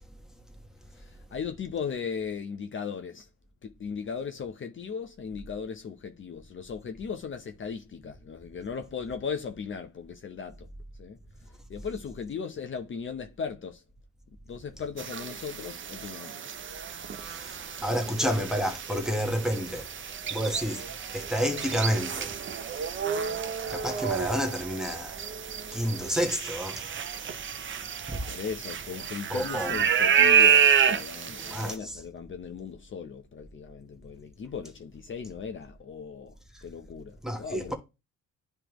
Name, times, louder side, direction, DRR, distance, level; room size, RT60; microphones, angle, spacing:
voice 1, 0.9-3.3 3.6-10.7 11.0-11.2 11.7-13.8 14.5-16.4 17.9-18.4 28.3-36.4 36.6-37.7, left 6 dB, 40° left, 0.8 m, -37 dB
sound 1, 15.0-31.7, right 7 dB, 40° right, 0.6 m, -29 dB
voice 2, 17.2-17.5 17.8-19.9 20.3-22.3 23.7-25.2 25.7-26.9 28.1-28.2 29.3-29.8 31.4-32.0 37.2-37.7, equal, ahead, 1.2 m, -30 dB
9.9 x 3.3 x 3.0 m
cardioid pair, 90°, 30 cm